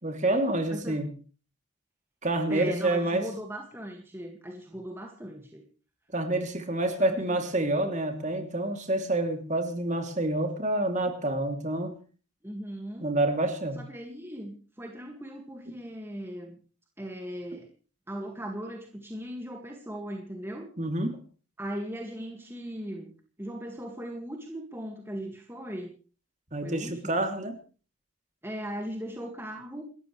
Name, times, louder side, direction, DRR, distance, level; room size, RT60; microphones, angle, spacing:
voice 1, 0.0-1.1 2.2-3.3 6.1-12.0 13.0-13.8 15.7-15.8 20.8-21.2 26.5-27.6, right 1 dB, 35° right, 5 dB, 2.9 m, -28 dB
voice 2, 0.7-1.0 2.5-5.6 7.0-7.5 12.4-13.1 13.8-16.6 17.0-17.7 18.1-20.7 21.6-23.1 23.4-25.9 26.6-27.2 28.4-29.8, equal, 10° right, 2 dB, 2.0 m, -38 dB
28.5 x 14.0 x 3.3 m, 0.38 s
head